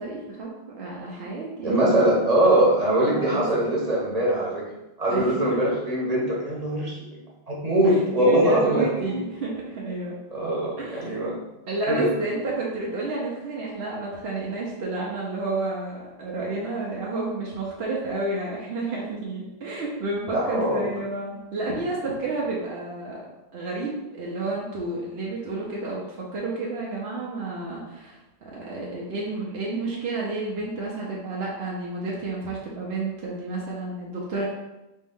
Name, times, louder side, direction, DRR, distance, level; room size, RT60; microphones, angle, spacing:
voice 1, 0.0-2.1 3.1-3.7 5.1-5.4 7.8-10.2 10.8-11.3 11.7-23.2 23.5-34.4, right 3 dB, 60° right, -4 dB, 1.0 m, -31 dB
voice 2, 1.6-4.7 5.0-7.0 7.5-9.2 10.3-11.4 11.9-12.1 20.3-20.9, right 1 dB, 35° right, -5 dB, 1.2 m, -22 dB
4.3 x 3.1 x 3.7 m, 0.97 s
omnidirectional pair, 1.2 m